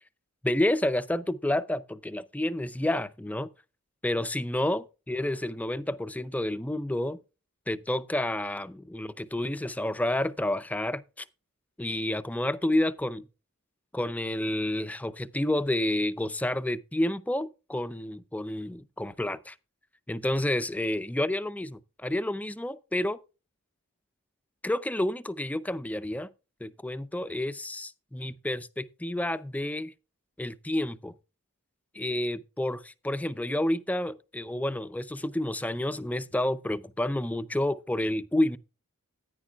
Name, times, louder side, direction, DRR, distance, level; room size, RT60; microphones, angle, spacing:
voice 1, 0.4-3.5 4.0-7.2 7.7-11.2 11.8-13.3 13.9-19.6 20.1-23.2 24.6-26.3 26.6-29.9 30.4-31.1 31.9-38.6, left 1 dB, 5° left, 0.4 m, -29 dB
14.5 x 9.8 x 2.3 m
head